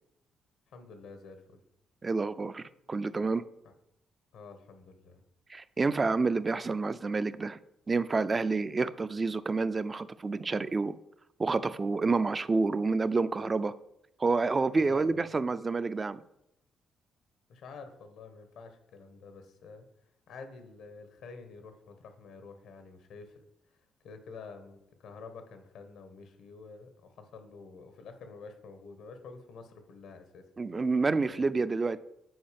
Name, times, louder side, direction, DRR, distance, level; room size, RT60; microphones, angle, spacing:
voice 1, 0.7-1.6 4.3-5.2 14.8-15.3 17.5-19.8 20.3-23.4 24.0-30.4 31.3-31.5, left 4 dB, 80° left, 8 dB, 1.3 m, -49 dB
voice 2, 2.0-3.4 5.5-7.6 7.9-10.9 11.4-13.7 14.2-16.2 30.6-32.0, right 3 dB, 30° right, 14 dB, 0.4 m, -28 dB
7.9 x 4.7 x 5.2 m, 0.80 s
cardioid pair, 90°, 0 cm